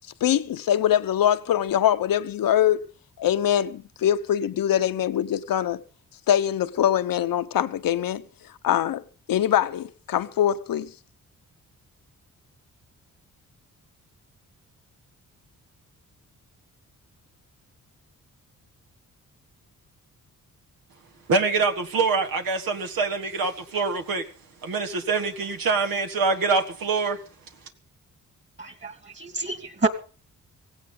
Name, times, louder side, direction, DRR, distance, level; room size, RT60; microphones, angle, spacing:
voice 1, 0.2-2.8 3.2-5.8 6.3-8.2 8.6-9.0 9.3-10.9, left 10 dB, 80° left, 1.0 m, -23 dB
voice 2, 21.3-24.2 24.6-27.2, right 4 dB, 90° right, 1.9 m, -24 dB
voice 3, 28.6-29.9, right 3 dB, 35° right, 2.5 m, -28 dB
16.5 x 16.5 x 4.0 m
cardioid pair, 75°, 33 cm